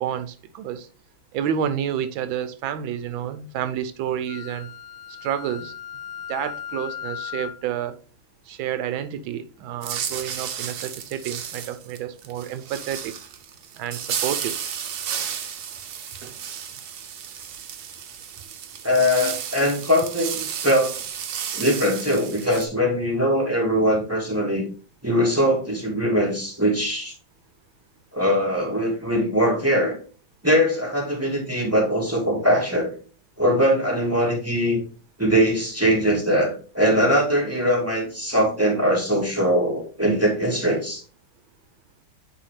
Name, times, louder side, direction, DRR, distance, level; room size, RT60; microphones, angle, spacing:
voice 1, 0.0-0.9 1.3-4.7 5.2-5.7 6.3-8.0 8.5-13.1 13.8-14.6, right 9 dB, 85° right, 1.4 m, -29 dB
Wind instrument woodwind instrument, 4.3-7.6, left 9 dB, 85° left, 1.4 m, -36 dB
sound 1, 9.8-22.7, right 8 dB, 60° right, 1.2 m, -33 dB
voice 2, 18.8-20.9 21.5-24.6 25.0-27.1 28.1-30.0 30.4-32.9 33.4-34.8 35.2-41.0, equal, 10° right, 1.5 m, -21 dB
9.7 x 3.4 x 3.2 m
omnidirectional pair, 2.1 m